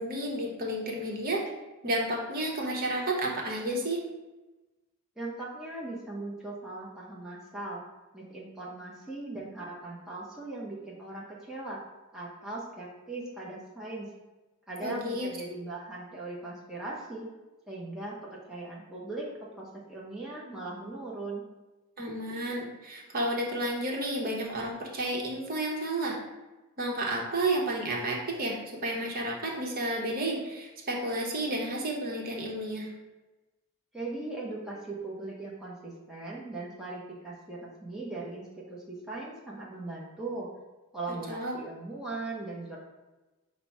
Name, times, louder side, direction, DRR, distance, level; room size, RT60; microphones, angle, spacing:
voice 1, 0.0-1.4 1.8-4.0 14.8-15.3 22.0-26.2 26.8-32.9 41.3-41.6, right 1 dB, 40° right, -1 dB, 0.8 m, -31 dB
voice 2, 5.2-7.8 8.1-11.8 12.1-14.1 14.7-17.3 17.7-19.3 19.6-21.4 33.9-40.5 40.9-42.8, right 2 dB, 5° right, -6 dB, 0.7 m, -39 dB
5.6 x 2.0 x 4.6 m, 1.1 s
head